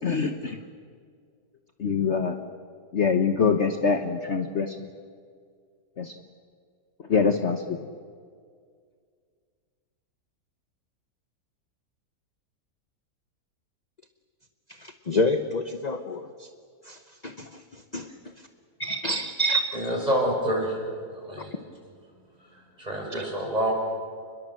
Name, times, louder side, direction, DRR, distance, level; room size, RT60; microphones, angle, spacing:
voice 1, 0.0-0.6 1.8-2.4 2.9-4.8 6.0-6.1 7.1-7.8, left 5 dB, 45° left, 6 dB, 1.3 m, -24 dB
voice 2, 14.8-16.5 16.9-17.5 17.9-18.1 18.8-19.8, equal, 30° left, 8 dB, 0.9 m, -28 dB
voice 3, 19.7-20.8 21.1-21.5 22.4-23.7, equal, 25° right, -1 dB, 7.3 m, -27 dB
29.0 x 21.5 x 7.7 m, 2.1 s
omnidirectional pair, 1.7 m